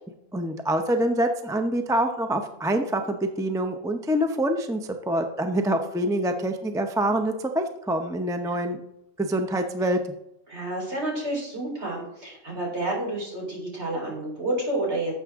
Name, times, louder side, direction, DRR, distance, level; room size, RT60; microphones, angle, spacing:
voice 1, 0.3-8.8 9.2-10.0, right 1 dB, 5° right, 5 dB, 0.5 m, -25 dB
voice 2, 10.5-15.1, right 1 dB, 55° right, -3 dB, 4.4 m, -30 dB
12.0 x 7.6 x 3.6 m, 0.82 s
omnidirectional pair, 1.4 m